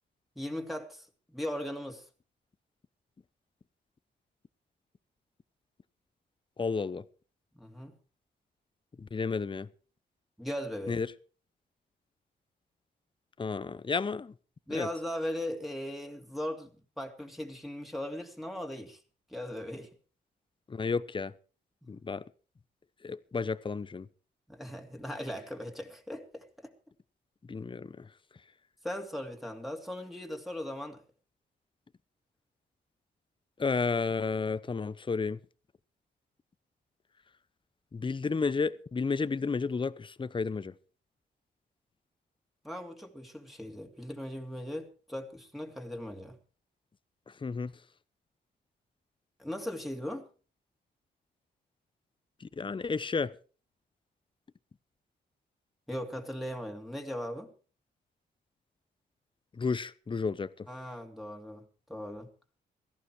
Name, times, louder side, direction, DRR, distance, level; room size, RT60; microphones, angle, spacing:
voice 1, 0.4-2.0 7.5-8.0 10.4-11.0 14.7-19.0 19.3-19.9 21.8-22.0 24.5-26.7 28.8-31.0 42.6-46.4 49.4-50.3 55.9-57.5 60.7-62.3, left 1 dB, ahead, 2.8 m, -38 dB
voice 2, 6.6-7.0 9.0-9.7 10.9-11.1 13.4-14.3 14.7-14.9 20.7-21.3 21.9-22.2 23.0-24.1 27.5-28.1 33.6-35.4 37.9-40.7 47.4-47.7 52.4-53.3 59.5-60.7, left 4 dB, 30° left, 0.8 m, -32 dB
17.5 x 14.0 x 4.8 m
cardioid pair, 85°, 18 cm